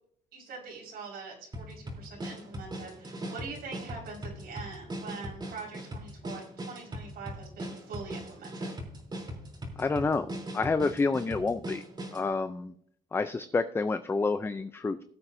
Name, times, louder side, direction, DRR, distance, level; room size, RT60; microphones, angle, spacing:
voice 1, 0.3-8.7, right 4 dB, 65° right, -2 dB, 4.9 m, -43 dB
sound 1, 1.5-12.3, right 1 dB, 25° right, 3.3 m, -40 dB
voice 2, 9.8-11.8 12.1-12.7 13.1-15.0, left 3 dB, 15° left, 11 dB, 0.4 m, -29 dB
19.5 x 8.2 x 2.7 m, 0.64 s
cardioid pair, 110°, 17 cm